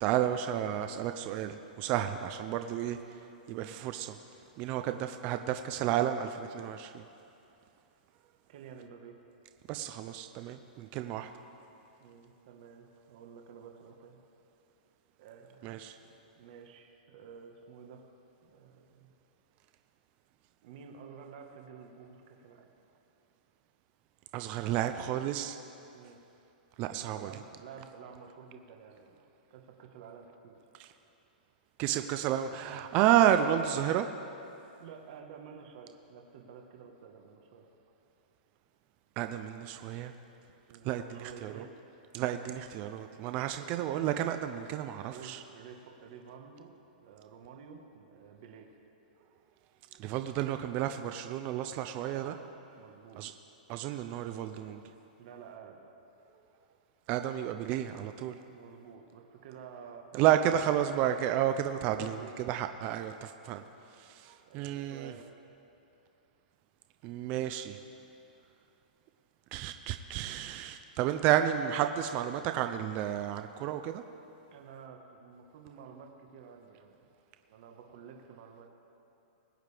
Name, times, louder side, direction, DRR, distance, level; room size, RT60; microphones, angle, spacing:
voice 1, 0.0-3.0 3.5-4.2 4.6-7.0 9.7-11.3 15.6-16.0 24.3-25.6 26.8-27.3 30.8-30.9 31.8-34.1 39.2-40.1 40.8-41.6 42.1-45.4 50.0-52.3 53.2-53.3 53.7-54.8 57.1-58.4 60.1-63.6 64.0-65.1 67.0-67.8 69.5-74.0, right 11 dB, 30° right, 8 dB, 0.5 m, -31 dB
voice 2, 8.5-9.2 12.0-14.2 15.2-18.1 18.4-19.1 20.6-22.7 25.9-26.2 27.1-30.6 34.8-37.6 40.7-41.8 43.1-43.7 45.1-46.7 47.0-48.7 51.9-52.4 52.8-53.4 55.2-55.8 58.5-60.9 61.8-62.4 62.8-63.1 64.5-65.3 74.5-77.1 77.5-78.7, right 7 dB, 50° right, 2 dB, 1.3 m, -51 dB
21.0 x 9.2 x 3.4 m, 2.8 s
hypercardioid pair, 155°, 5 cm